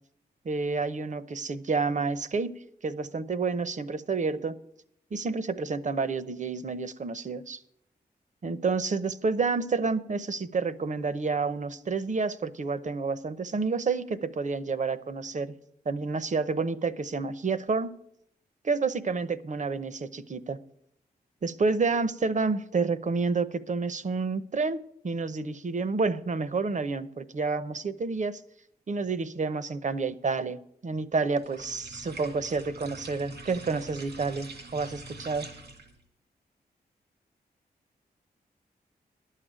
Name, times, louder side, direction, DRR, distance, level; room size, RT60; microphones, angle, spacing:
voice 1, 0.4-2.5 2.8-4.5 5.1-7.6 8.4-15.5 15.9-17.9 18.6-20.6 21.4-28.4 28.9-35.5, right 4 dB, 50° right, 14 dB, 0.8 m, -29 dB
sound 1, 31.4-36.0, right 2 dB, 90° right, 2.4 m, -45 dB
11.0 x 6.6 x 8.8 m, 0.72 s
cardioid pair, 55°, 17 cm